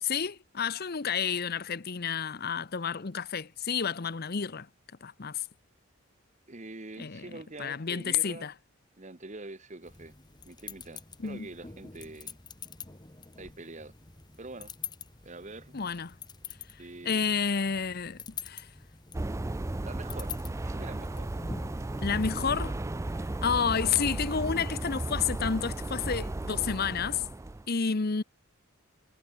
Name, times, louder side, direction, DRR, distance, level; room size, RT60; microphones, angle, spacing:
voice 1, 0.0-4.7 5.0-5.4 7.0-7.3 7.6-8.5 11.2-11.5 15.7-16.2 17.0-18.7 22.0-22.8 23.4-27.2 27.7-28.2, left 6 dB, 45° left, 0.7 m, -30 dB
voice 2, 6.5-8.5 9.0-10.1 10.5-12.4 13.4-13.9 14.4-14.7 15.2-15.7 16.8-17.3 19.8-21.3, right 2 dB, 35° right, 1.3 m, -45 dB
sound 1, 9.8-22.3, left 5 dB, 20° left, 1.5 m, -46 dB
sound 2, 19.1-27.7, right 2 dB, 15° right, 0.3 m, -35 dB
head